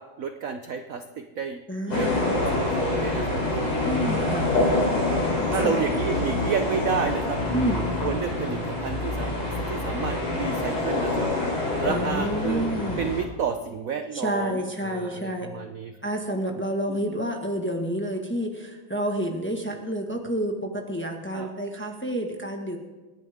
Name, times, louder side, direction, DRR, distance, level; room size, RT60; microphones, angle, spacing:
voice 1, 0.0-1.6 1.9-3.4 3.7-3.8 5.5-7.4 8.0-9.4 9.7-11.3 11.8-12.7 13.0-15.9 16.9-17.2 21.3-21.5, right 6 dB, 65° right, 7 dB, 0.8 m, -31 dB
voice 2, 1.7-2.4 3.8-4.6 5.6-5.8 7.5-7.9 11.9-13.0 14.1-15.5 16.0-22.8, equal, 5° left, 2 dB, 1.2 m, -29 dB
sound 1, 1.9-13.2, left 2 dB, 80° left, 4.4 m, -26 dB
27.5 x 10.5 x 3.6 m, 1.2 s
omnidirectional pair, 2.3 m